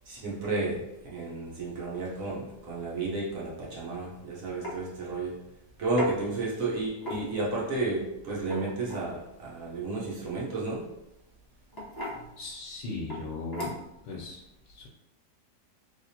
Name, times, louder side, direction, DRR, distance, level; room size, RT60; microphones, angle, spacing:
voice 1, 0.1-5.4 5.8-10.9, right 2 dB, 55° right, -5 dB, 1.2 m, -32 dB
sound 1, 4.1-4.2 4.6-4.8 6.0-6.1 7.0-7.5 8.4-9.1 10.7-11.0 11.7-12.2 13.1-13.2 13.5-14.0, equal, 25° left, 0.5 m, -36 dB
voice 2, 12.1-13.8 14.0-14.9, left 3 dB, 80° left, -3 dB, 1.3 m, -38 dB
3.3 x 3.2 x 2.8 m, 0.90 s
omnidirectional pair, 1.9 m